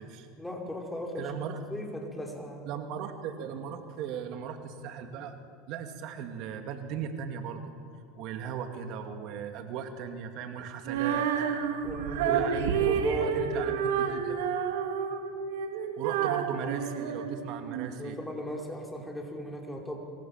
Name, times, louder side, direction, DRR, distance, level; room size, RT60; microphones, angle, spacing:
voice 1, 0.4-1.4 1.7-2.7 11.8-12.5 12.8-13.8 18.0-20.0, equal, 5° left, 1 dB, 5.0 m, -37 dB
voice 2, 1.2-1.6 2.7-5.4 5.7-7.6 8.2-11.3 12.3-14.4 16.0-18.2, right 7 dB, 60° right, 6 dB, 2.5 m, -37 dB
Female singing, 10.9-17.9, right 7 dB, 85° right, 2.5 m, -30 dB
26.0 x 24.5 x 7.4 m, 2.4 s
supercardioid pair, 110°, 0 cm